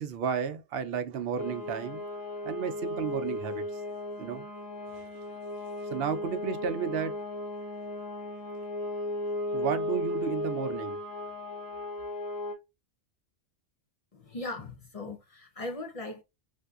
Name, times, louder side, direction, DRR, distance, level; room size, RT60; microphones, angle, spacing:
voice 1, 0.0-2.0 2.4-3.8 4.2-4.5 4.9-5.0 5.8-7.1 9.5-11.0, right 7 dB, 70° right, 0.8 m, -33 dB
sound 1, 1.4-12.5, left 1 dB, 25° left, 1.0 m, -36 dB
voice 2, 14.1-16.2, left 2 dB, 50° left, 0.4 m, -39 dB
3.5 x 2.6 x 2.3 m
omnidirectional pair, 1.1 m